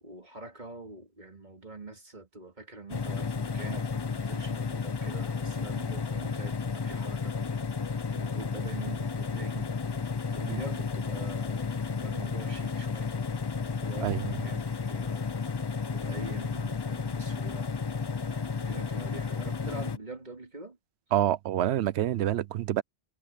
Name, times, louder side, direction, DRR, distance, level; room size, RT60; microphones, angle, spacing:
voice 1, 0.0-7.4 8.1-9.7 10.3-13.1 13.8-15.3 15.9-17.7 18.5-20.8, right 2 dB, 45° right, 2.8 m, -44 dB
sound 1, 2.9-20.0, left 5 dB, 35° left, 0.4 m, -32 dB
voice 2, 14.0-14.4 21.1-22.8, right 12 dB, 80° right, 0.9 m, -27 dB
omnidirectional pair, 1.1 m